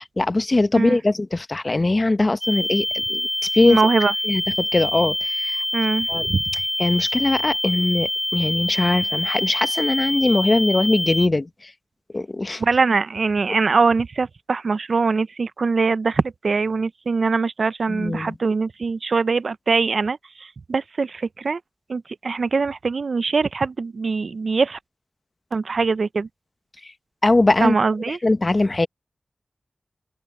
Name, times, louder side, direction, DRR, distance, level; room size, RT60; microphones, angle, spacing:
voice 1, 0.0-3.8 4.2-5.6 6.1-6.3 6.8-11.7 12.1-12.6 17.9-18.3 26.8-26.9 27.2-27.7 28.1-28.9, left 2 dB, 35° left, 0.9 m, -21 dB
sound 1, 2.4-11.3, left 1 dB, 15° left, 1.5 m, -25 dB
voice 2, 3.7-4.1 5.7-6.4 12.6-21.6 21.9-24.8 25.5-26.3 27.6-28.2, right 4 dB, 70° right, 0.4 m, -22 dB
open air
wide cardioid pair, 95°, 0 cm